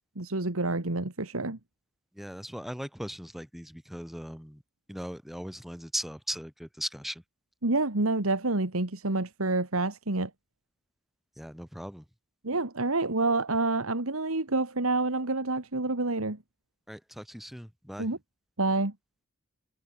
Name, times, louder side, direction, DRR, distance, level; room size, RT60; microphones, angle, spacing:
voice 1, 0.2-1.6 7.6-10.3 12.4-16.4 18.0-18.2 18.6-18.9, right 2 dB, 75° right, 2.1 m, -28 dB
voice 2, 2.2-4.6 4.9-7.1 11.4-12.0 16.9-18.1, equal, ahead, 1.3 m, -38 dB
head